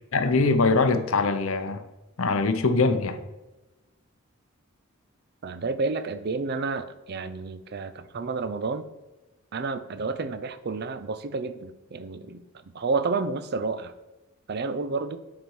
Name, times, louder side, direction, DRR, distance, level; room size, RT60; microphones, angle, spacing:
voice 1, 0.1-1.8 2.2-3.2, left 3 dB, 70° left, 0.7 m, -22 dB
voice 2, 5.4-8.8 9.5-12.4 12.7-13.9 14.5-15.2, right 4 dB, 45° right, 0.5 m, -30 dB
7.7 x 4.2 x 4.7 m
head